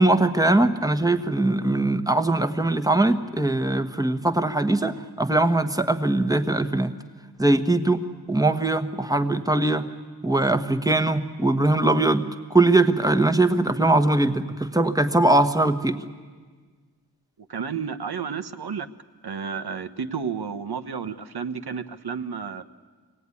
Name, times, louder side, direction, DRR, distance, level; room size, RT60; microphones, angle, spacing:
voice 1, 0.0-6.9 7.4-8.0 8.3-9.9 10.2-12.2 12.5-16.0, right 2 dB, 10° right, 8 dB, 1.1 m, -21 dB
voice 2, 17.5-18.9 19.2-22.6, right 6 dB, 70° right, 10 dB, 1.0 m, -31 dB
24.0 x 17.5 x 9.7 m, 1.5 s
wide cardioid pair, 95°, 40 cm